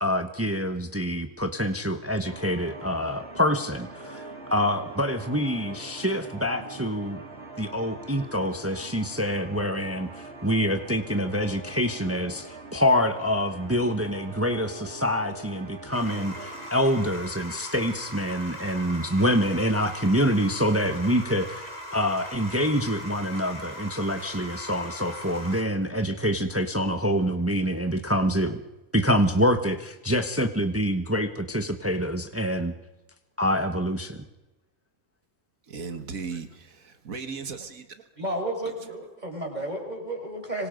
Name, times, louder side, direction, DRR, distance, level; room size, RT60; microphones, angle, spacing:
voice 1, 0.0-7.2 7.6-28.6 28.9-32.7 33.4-34.2, equal, 10° right, 7 dB, 1.1 m, -26 dB
sound 1, 2.2-16.7, right 2 dB, 50° right, 3.1 m, -43 dB
sound 2, 15.9-25.6, equal, 30° left, 3.3 m, -40 dB
voice 2, 35.7-38.1, right 5 dB, 85° right, 8 dB, 2.1 m, -37 dB
voice 3, 38.2-40.7, right 1 dB, 30° right, 1 dB, 5.7 m, -32 dB
26.0 x 24.5 x 5.3 m, 1.0 s
omnidirectional pair, 1.4 m